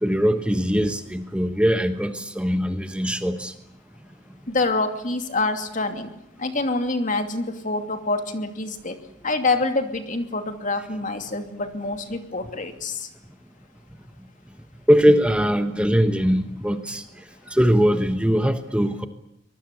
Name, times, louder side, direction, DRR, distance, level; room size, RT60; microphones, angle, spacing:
voice 1, 0.0-3.5 14.9-17.0 17.5-19.1, equal, 5° right, 8 dB, 1.1 m, -21 dB
voice 2, 4.5-6.1 6.4-9.0 9.2-13.1, left 3 dB, 45° left, 7 dB, 2.8 m, -26 dB
24.5 x 20.5 x 8.3 m, 0.83 s
head